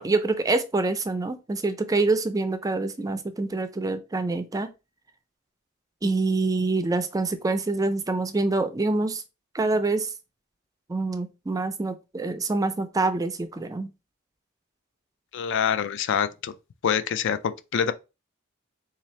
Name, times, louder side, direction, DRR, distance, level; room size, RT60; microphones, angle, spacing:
voice 1, 0.0-4.7 6.0-9.2 9.5-10.1 10.9-13.9, right 3 dB, 15° right, 0.4 m, -26 dB
voice 2, 15.3-16.5 16.8-17.9, left 7 dB, 60° left, 0.4 m, -25 dB
3.8 x 2.8 x 3.1 m
head